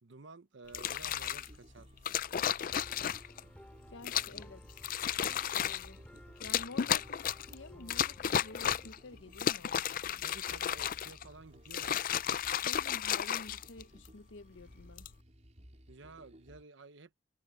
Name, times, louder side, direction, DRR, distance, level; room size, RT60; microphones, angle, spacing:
voice 1, 0.0-2.4 6.8-6.9 10.2-12.0 15.9-17.2, right 3 dB, 70° right, 0.9 m, -53 dB
sound 1, 0.7-1.5 2.0-3.4 4.0-4.4 4.8-5.9 6.4-7.5 7.9-9.0 9.3-11.2 11.6-14.1 14.8-15.1, left 9 dB, 45° left, 0.4 m, -33 dB
sound 2, 0.7-16.6, equal, 35° right, 4.6 m, -57 dB
sound 3, 2.4-8.9, equal, 5° left, 5.3 m, -56 dB
voice 2, 3.9-4.9 5.5-6.0 6.4-9.8 10.0-10.2 12.6-15.1, left 2 dB, 70° left, 0.9 m, -50 dB
head